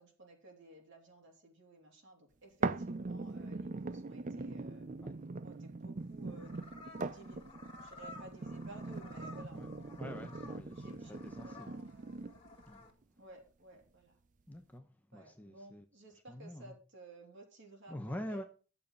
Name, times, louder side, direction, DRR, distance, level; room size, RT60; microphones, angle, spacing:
voice 1, 0.0-4.9 5.4-6.5 7.0-9.8 10.8-12.3 13.2-14.2 15.1-18.0 18.3-18.4, right 2 dB, 55° right, 3.1 m, -56 dB
sound 1, 2.6-12.6 13.2-13.3, right 3 dB, 35° right, 0.5 m, -41 dB
sound 2, 6.0-12.9, left 2 dB, 25° left, 2.2 m, -54 dB
voice 2, 10.0-11.7 12.7-12.8 14.5-15.8 16.3-16.7 17.9-18.4, equal, 5° left, 0.8 m, -45 dB
11.0 x 7.0 x 5.3 m
head